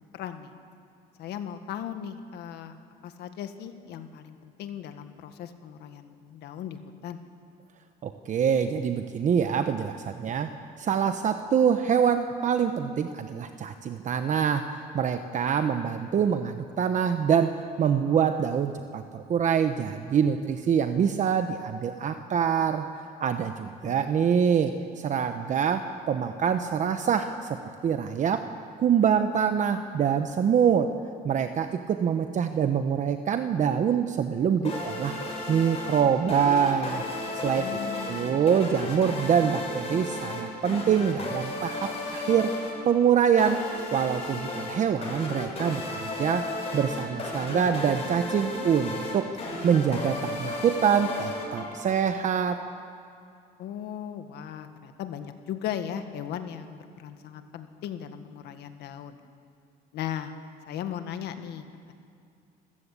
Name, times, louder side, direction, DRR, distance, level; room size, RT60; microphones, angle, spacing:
voice 1, 0.1-0.5 1.2-2.8 3.0-7.2 23.8-24.2 37.6-38.4 53.6-59.2 59.9-60.3 60.7-61.9, left 9 dB, 75° left, 8 dB, 1.7 m, -37 dB
voice 2, 8.0-10.5 10.8-22.8 23.2-28.5 28.8-30.9 31.2-35.1 35.5-37.0 37.4-37.8 38.1-42.5 42.8-43.6 43.9-46.5 46.7-49.3 49.6-52.6, right 7 dB, 45° right, 8 dB, 1.0 m, -25 dB
sound 1, 34.6-52.1, left 2 dB, 35° left, 6.9 m, -34 dB
27.0 x 15.0 x 8.4 m, 2.4 s
cardioid pair, 110°, 17 cm